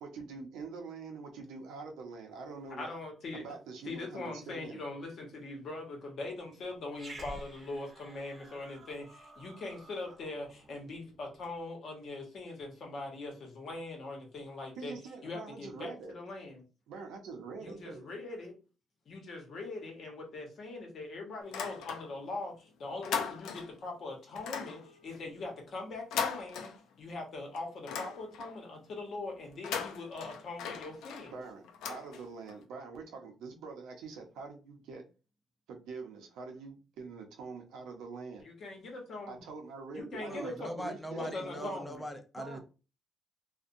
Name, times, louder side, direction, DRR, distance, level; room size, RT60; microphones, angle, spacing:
voice 1, 0.0-2.9 3.3-4.8 14.8-16.1 16.9-18.1 31.3-35.0 35.7-38.5 39.3-41.8 42.4-42.6, right 4 dB, 90° right, 0.6 m, -45 dB
voice 2, 2.8-3.4 3.8-14.9 15.2-16.6 17.6-18.5 19.1-26.7 27.0-31.3 38.4-39.4 39.9-40.7 41.2-42.0, left 2 dB, 60° left, 1.0 m, -41 dB
Growling, 6.9-11.5, right 1 dB, 25° right, 0.9 m, -51 dB
sound 1, 21.4-22.4 22.7-23.9 24.4-27.2 27.5-28.7 29.5-32.6, left 7 dB, 90° left, 0.4 m, -39 dB
voice 3, 40.3-42.6, equal, 10° left, 0.6 m, -41 dB
2.6 x 2.1 x 2.5 m
cardioid pair, 90°, 0 cm